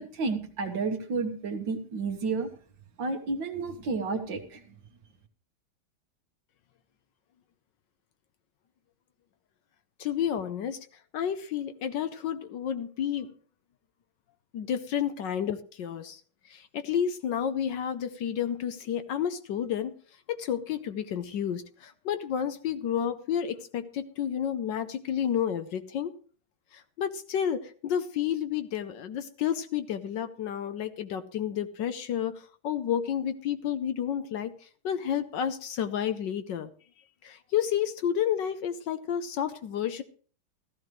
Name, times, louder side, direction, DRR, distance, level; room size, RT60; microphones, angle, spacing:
voice 1, 0.0-2.5 3.0-4.6, right 4 dB, 65° right, 6 dB, 2.0 m, -31 dB
voice 2, 10.0-10.9 11.1-13.3 14.5-16.2 16.5-19.9 20.3-26.1 26.7-36.7 37.2-40.0, left 9 dB, 70° left, 10 dB, 1.3 m, -31 dB
15.0 x 14.5 x 3.2 m, 0.42 s
omnidirectional pair, 2.3 m